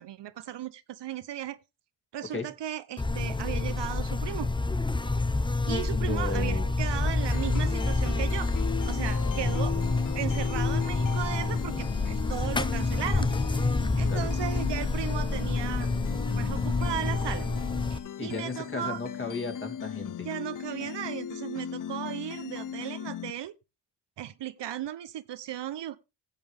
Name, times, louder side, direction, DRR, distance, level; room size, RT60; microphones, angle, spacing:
voice 1, 0.0-1.6 2.1-4.5 5.7-8.5 8.8-9.8 10.1-13.3 14.0-15.9 16.3-17.5 17.9-19.0 20.2-23.5 24.2-26.0, right 11 dB, 70° right, 0.9 m, -36 dB
Buzz, 3.0-18.0, left 3 dB, 10° left, 0.7 m, -28 dB
voice 2, 5.9-6.7 14.0-14.3 18.2-20.3, left 3 dB, 25° left, 2.9 m, -35 dB
sound 1, 7.3-23.3, left 9 dB, 45° left, 0.6 m, -38 dB
16.0 x 7.7 x 3.5 m
cardioid pair, 95°, 43 cm